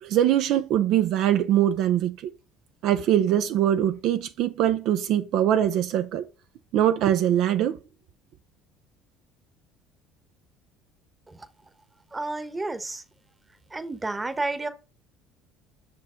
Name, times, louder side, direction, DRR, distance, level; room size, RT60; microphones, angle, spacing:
voice 1, 0.0-2.3 2.8-6.2 6.7-7.8, right 11 dB, 65° right, 0.6 m, -22 dB
voice 2, 12.1-13.0 13.7-14.7, right 2 dB, 20° right, 1.1 m, -31 dB
6.2 x 4.6 x 3.8 m
supercardioid pair, 85°, 0 cm